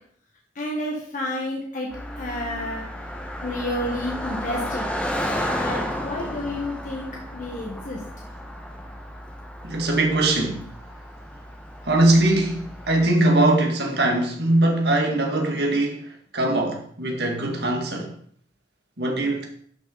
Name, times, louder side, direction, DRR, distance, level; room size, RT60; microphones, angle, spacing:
voice 1, 0.5-1.9 2.1-2.8 3.4-4.9 5.6-8.0, left 1 dB, 45° left, 1.6 m, -30 dB
Car passing by, 1.9-13.1, equal, 5° left, 1.4 m, -33 dB
voice 2, 9.6-10.7 11.8-18.1 19.0-19.5, right 2 dB, 65° right, 2.1 m, -21 dB
12.0 x 6.1 x 4.0 m
head